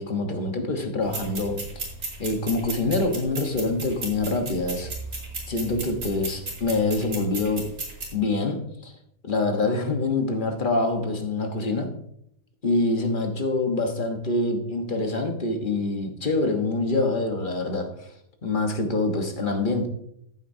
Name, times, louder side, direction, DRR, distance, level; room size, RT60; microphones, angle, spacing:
voice 1, 0.0-1.6 2.2-4.9 5.5-7.7 8.1-8.9 9.2-11.9 12.6-18.1 18.4-19.9, left 2 dB, 35° left, 4 dB, 1.3 m, -25 dB
sound 1, 1.0-8.1, right 2 dB, 80° right, 3.3 m, -35 dB
14.5 x 8.1 x 2.7 m, 0.74 s
omnidirectional pair, 1.5 m